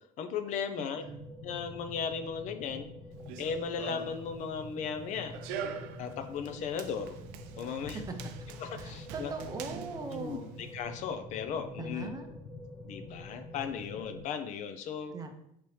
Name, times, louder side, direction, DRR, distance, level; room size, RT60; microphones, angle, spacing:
voice 1, 0.2-1.0 1.4-2.9 3.4-5.3 6.0-7.2 7.6-8.0 8.6-9.3 10.1-10.4 10.7-12.1 12.8-15.1, left 6 dB, 55° left, 8 dB, 0.4 m, -36 dB
voice 2, 0.8-1.3 8.1-8.2 8.7-10.5 11.8-12.3 15.1-15.3, right 4 dB, 25° right, 5 dB, 0.6 m, -40 dB
sound 1, 1.1-14.2, left 2 dB, 20° left, 0.6 m, -46 dB
Run, 3.1-10.8, right 7 dB, 80° right, 0.4 m, -45 dB
5.4 x 2.9 x 3.1 m, 0.76 s
supercardioid pair, 110°, 15 cm